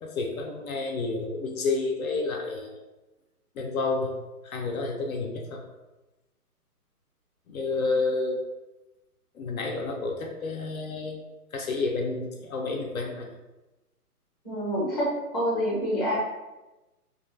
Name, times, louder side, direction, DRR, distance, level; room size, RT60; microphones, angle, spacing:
voice 1, 0.0-2.8 3.5-4.1 4.4-5.6 7.5-8.4 9.3-11.2 11.5-13.3, left 3 dB, 65° left, 1 dB, 0.5 m, -30 dB
voice 2, 14.4-15.1 15.3-16.1, equal, 15° left, -7 dB, 0.6 m, -27 dB
2.7 x 2.3 x 2.5 m, 1.1 s
hypercardioid pair, 150°, 47 cm